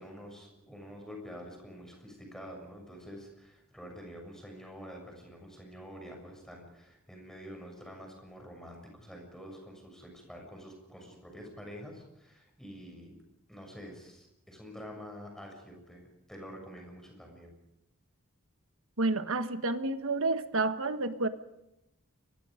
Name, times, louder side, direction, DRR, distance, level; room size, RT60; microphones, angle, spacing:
voice 1, 0.0-13.2 13.5-17.5, equal, ahead, 1 dB, 7.0 m, -47 dB
voice 2, 19.0-21.3, right 2 dB, 65° right, 9 dB, 1.5 m, -30 dB
30.0 x 23.5 x 5.2 m, 0.87 s
head